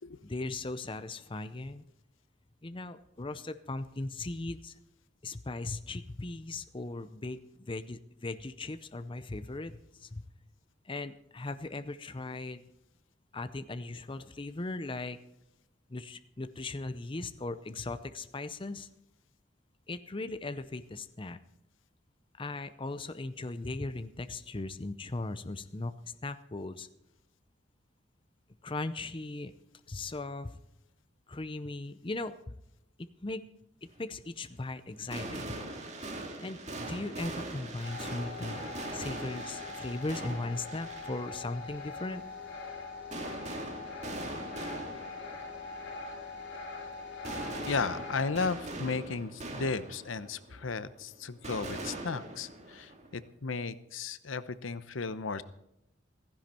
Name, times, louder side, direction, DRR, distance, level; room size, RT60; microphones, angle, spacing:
voice 1, 0.2-1.8 2.6-4.7 5.2-10.2 10.8-12.6 13.3-15.2 15.9-18.9 19.9-21.4 22.4-25.9 26.2-26.9 28.6-29.5 29.9-30.6 31.3-32.5 33.0-33.4 33.8-35.6 36.4-38.7 38.9-42.2, left 2 dB, 25° left, 10 dB, 0.6 m, -38 dB
sound 1, 34.5-34.6 34.9-53.2, right 2 dB, 35° right, 2.3 m, -42 dB
sound 2, 37.8-48.3, left 3 dB, 60° left, 3.4 m, -42 dB
voice 2, 47.7-55.4, left 4 dB, 80° left, 14 dB, 0.8 m, -35 dB
16.0 x 15.0 x 4.4 m, 0.81 s
head